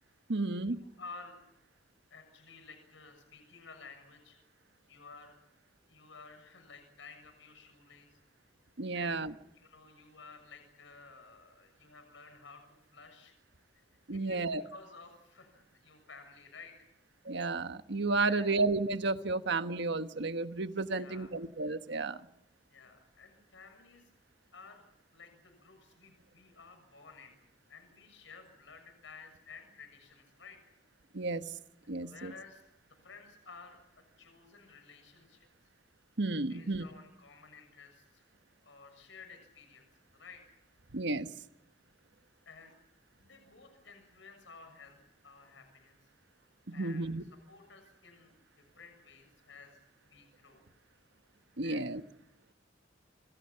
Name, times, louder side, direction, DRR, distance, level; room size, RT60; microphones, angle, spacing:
voice 1, 0.3-0.8 8.8-9.3 14.1-14.6 17.2-22.2 31.1-31.5 31.9-32.3 36.2-36.8 40.9-41.3 46.7-47.2 51.6-52.0, right 3 dB, 65° right, 1.3 m, -32 dB
voice 2, 1.0-1.4 2.1-4.4 4.9-5.4 5.9-8.2 8.9-9.3 9.5-13.3 13.7-13.8 14.1-16.9 18.2-18.5 20.9-21.3 22.7-24.1 24.5-30.6 31.8-35.5 36.5-38.2 38.6-40.6 42.5-42.8 43.2-46.0 46.7-47.1 47.5-50.6 51.6-51.9, left 4 dB, 75° left, 6.9 m, -54 dB
27.5 x 26.5 x 5.8 m
head